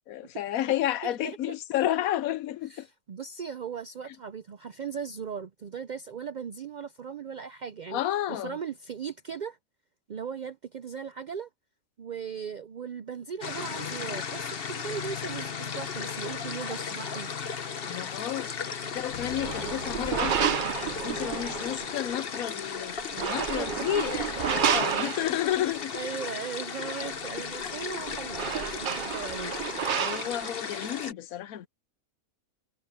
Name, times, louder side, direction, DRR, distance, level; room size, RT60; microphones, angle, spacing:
voice 1, 0.1-2.9 4.1-4.2 7.9-8.6 17.9-20.6 21.0-26.0 29.9-31.7, left 12 dB, 80° left, 1.2 m, -31 dB
voice 2, 1.0-1.4 2.7-8.0 8.3-9.6 10.1-11.5 12.0-17.3 23.2-23.3 23.6-23.7 25.9-29.7, right 6 dB, 90° right, 0.4 m, -38 dB
sound 1, 13.4-31.1, left 6 dB, 45° left, 1.1 m, -36 dB
sound 2, 19.1-22.9, left 6 dB, 60° left, 1.8 m, -47 dB
sound 3, 19.2-21.9 23.0-25.7 27.6-27.7 28.0-30.5, right 8 dB, 50° right, 0.6 m, -30 dB
omnidirectional pair, 1.5 m